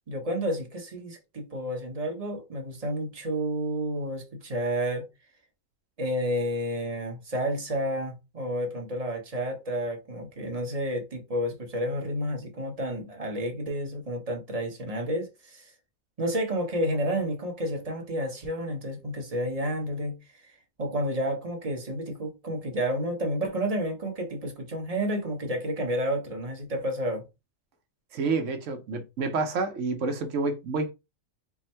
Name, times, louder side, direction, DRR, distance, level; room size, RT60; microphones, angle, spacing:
voice 1, 0.1-5.1 6.0-15.7 16.2-20.2 20.4-20.5 20.8-27.2, equal, 30° right, 1.0 m, -30 dB
voice 2, 28.1-30.9, right 3 dB, 60° right, 1.0 m, -29 dB
3.5 x 2.1 x 4.3 m
omnidirectional pair, 1.5 m